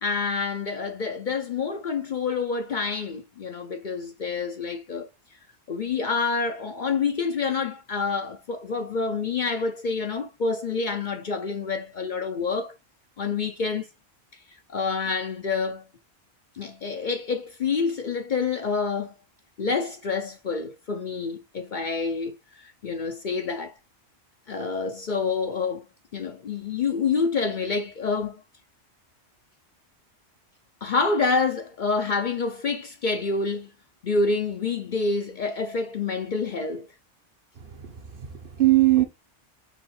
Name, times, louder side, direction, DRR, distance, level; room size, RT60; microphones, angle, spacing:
voice 1, 0.0-5.1 5.7-12.8 13.2-13.9 14.7-15.8 16.5-19.1 19.6-23.7 24.5-25.9 26.1-28.4 30.8-33.7 34.0-36.9, left 4 dB, 50° left, 0.7 m, -27 dB
voice 2, 37.6-39.0, right 17 dB, 55° right, 1.0 m, -22 dB
4.9 x 3.2 x 3.1 m
omnidirectional pair, 1.2 m